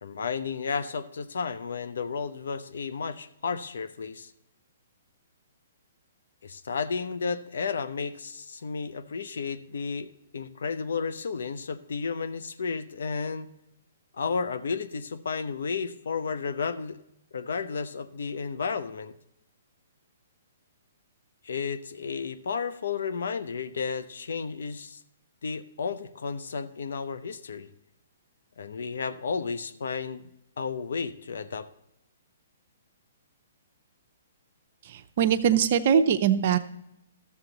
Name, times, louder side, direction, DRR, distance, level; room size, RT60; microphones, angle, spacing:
voice 1, 0.0-4.3 6.4-13.5 14.2-17.0 17.3-19.1 21.4-25.0 25.4-27.7 28.6-30.3 30.6-31.7, left 5 dB, 75° left, 12 dB, 0.7 m, -32 dB
voice 2, 34.8-36.6, right 8 dB, 50° right, 9 dB, 0.6 m, -22 dB
13.0 x 7.1 x 3.9 m, 0.82 s
hypercardioid pair, 140°, 0 cm